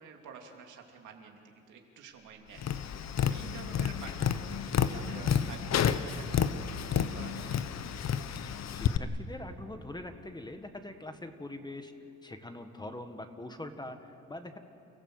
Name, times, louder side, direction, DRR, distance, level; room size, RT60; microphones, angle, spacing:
voice 1, 0.0-2.8 3.3-7.6, right 6 dB, 80° right, 2 dB, 2.8 m, -50 dB
Tap, 2.6-9.0, left 8 dB, 60° left, 1.0 m, -30 dB
voice 2, 8.7-11.9 12.2-14.6, left 1 dB, 15° left, 7 dB, 1.6 m, -43 dB
29.5 x 15.0 x 7.9 m, 2.6 s
cardioid pair, 90°, 30 cm